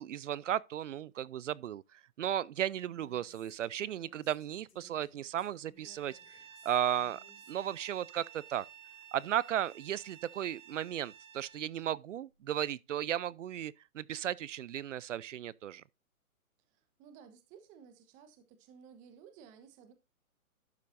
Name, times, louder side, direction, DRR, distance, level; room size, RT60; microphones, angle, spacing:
voice 1, 0.0-6.4 6.6-7.2 7.5-8.7 9.1-15.8, right 11 dB, 60° right, 0.5 m, -35 dB
Female speech woman speaking, 2.6-8.0, left 3 dB, 15° left, 2.4 m, -64 dB
Bowed string instrument, 5.8-11.7, right 9 dB, 40° right, 2.2 m, -54 dB
voice 2, 16.7-19.9, right 7 dB, 20° right, 1.2 m, -56 dB
11.5 x 8.3 x 2.6 m
hypercardioid pair, 150°, 43 cm